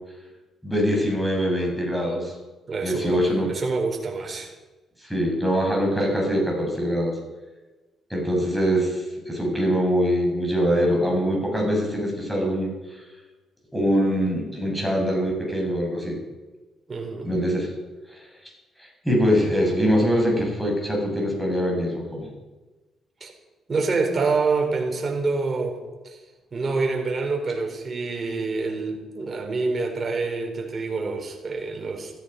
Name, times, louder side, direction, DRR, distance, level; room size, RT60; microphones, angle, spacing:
voice 1, 0.6-2.4 2.8-3.5 5.0-7.2 8.1-13.0 13.7-16.2 17.2-17.7 18.1-18.2 18.8-22.3, equal, ahead, -1 dB, 6.9 m, -23 dB
voice 2, 2.7-4.5 16.9-17.3 23.2-23.3 23.7-25.7 26.0-26.2 26.5-32.1, right 4 dB, 40° right, 2 dB, 4.2 m, -26 dB
15.5 x 15.0 x 5.5 m, 1.2 s
cardioid pair, 75°, 0 cm